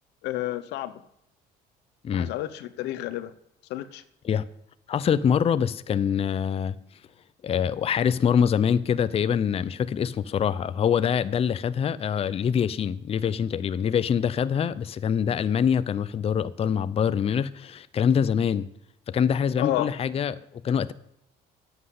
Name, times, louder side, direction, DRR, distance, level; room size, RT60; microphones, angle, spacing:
voice 1, 0.2-1.0 2.1-3.3 3.7-4.0 19.6-19.9, left 15 dB, 85° left, 0.8 m, -30 dB
voice 2, 4.9-6.7 7.4-18.7 19.1-20.9, left 7 dB, 35° left, 0.6 m, -24 dB
11.0 x 7.9 x 8.3 m
cardioid pair, 110°, 17 cm